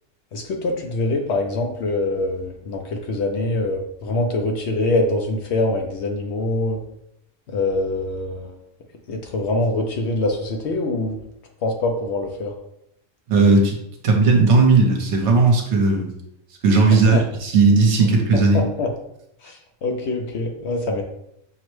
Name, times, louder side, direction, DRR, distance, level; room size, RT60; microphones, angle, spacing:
voice 1, 0.3-6.8 7.5-8.5 9.1-11.2 11.6-12.5 16.9-17.2 18.5-18.9 19.4-21.0, left 2 dB, 65° left, 2 dB, 0.8 m, -24 dB
voice 2, 13.3-13.8 14.0-16.1 16.6-18.6, right 3 dB, 65° right, 1 dB, 1.0 m, -16 dB
5.7 x 2.1 x 3.1 m, 0.76 s
omnidirectional pair, 1.4 m